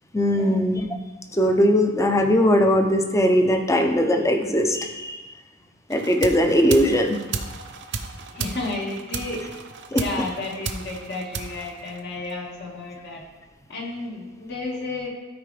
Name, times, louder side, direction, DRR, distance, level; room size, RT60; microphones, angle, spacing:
voice 1, 0.1-0.9 1.3-5.2 5.9-7.2 9.9-10.0, equal, 15° left, 4 dB, 0.7 m, -20 dB
sound 1, 5.9-12.5, right 5 dB, 60° right, 0.6 m, -34 dB
voice 2, 8.3-9.4 9.9-13.2 13.7-15.1, left 2 dB, 55° left, -2 dB, 1.8 m, -32 dB
13.0 x 4.6 x 3.4 m, 1.2 s
head